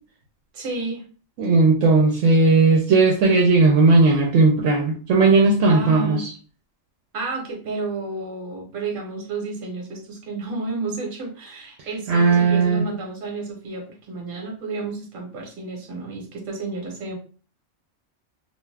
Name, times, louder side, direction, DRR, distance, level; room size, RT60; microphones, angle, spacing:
voice 1, 0.5-1.0 5.7-6.3 7.1-17.2, right 3 dB, 45° right, 0 dB, 1.0 m, -31 dB
voice 2, 1.4-6.3 12.1-12.8, right 3 dB, 70° right, 0 dB, 0.9 m, -16 dB
2.4 x 2.3 x 3.2 m, 0.39 s
omnidirectional pair, 1.4 m